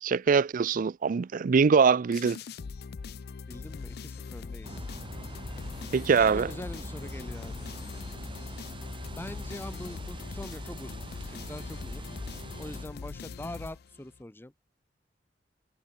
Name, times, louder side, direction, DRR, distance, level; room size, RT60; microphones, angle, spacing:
voice 1, 0.0-2.4 5.9-6.5, right 5 dB, 50° right, 0.4 m, -23 dB
sound 1, 2.1-14.2, left 5 dB, 60° left, 0.4 m, -41 dB
voice 2, 3.5-4.9 6.3-7.7 9.1-12.0 12.6-14.5, left 1 dB, 10° left, 0.8 m, -43 dB
sound 2, 4.6-12.9, right 1 dB, 30° right, 2.0 m, -43 dB
head